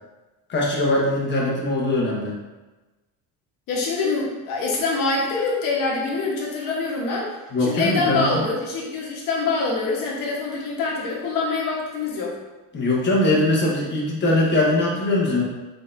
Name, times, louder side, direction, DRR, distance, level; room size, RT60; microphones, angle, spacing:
voice 1, 0.5-2.3 7.5-8.5 12.7-15.4, left 2 dB, 30° left, -4 dB, 1.1 m, -21 dB
voice 2, 3.7-7.3 7.6-12.3, left 3 dB, 60° left, -3 dB, 1.3 m, -25 dB
4.1 x 4.0 x 2.6 m, 1.2 s
cardioid pair, 140°, 38 cm